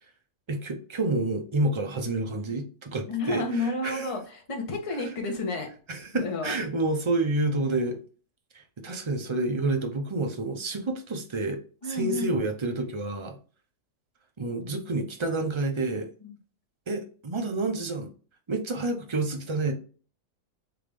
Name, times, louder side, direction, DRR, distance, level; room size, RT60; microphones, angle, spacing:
voice 1, 0.5-4.1 5.0-5.1 5.9-8.0 8.5-13.4 14.4-16.1 16.9-18.1 18.5-19.7, right 2 dB, 40° right, 0.4 m, -29 dB
voice 2, 3.1-5.7 6.1-6.6 11.8-12.4 16.2-16.4, left 3 dB, 25° left, 0.9 m, -31 dB
3.8 x 3.5 x 3.4 m
omnidirectional pair, 1.6 m